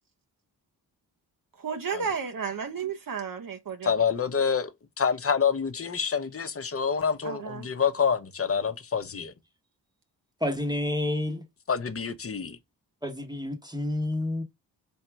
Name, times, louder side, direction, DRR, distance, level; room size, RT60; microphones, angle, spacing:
voice 1, 1.6-4.0 7.2-7.7, right 6 dB, 50° right, 0.9 m, -33 dB
voice 2, 3.8-4.7 5.0-9.3 11.7-12.6, left 6 dB, 35° left, 0.9 m, -27 dB
voice 3, 10.4-11.4 13.0-14.4, left 1 dB, 10° right, 1.1 m, -29 dB
3.6 x 2.8 x 4.6 m
supercardioid pair, 45°, 42 cm